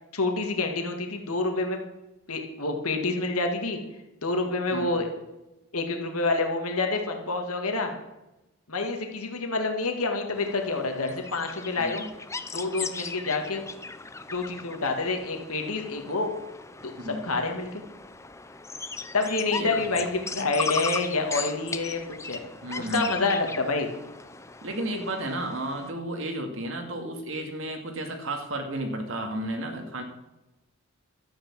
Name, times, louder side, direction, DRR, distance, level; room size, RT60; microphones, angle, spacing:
voice 1, 0.1-1.8 2.3-3.8 4.2-5.1 5.7-7.9 8.7-12.1 12.5-13.6 14.3-16.3 16.8-17.8 19.1-22.4 22.8-23.9, left 3 dB, 80° left, 4 dB, 2.0 m, -28 dB
voice 2, 4.7-5.0 11.8-12.1 17.0-17.2 19.5-20.1 22.6-23.2 24.6-30.0, right 1 dB, 60° right, 4 dB, 2.3 m, -33 dB
sound 1, 10.3-25.9, left 4 dB, 15° left, 0.6 m, -38 dB
12.5 x 8.9 x 7.4 m, 0.99 s
head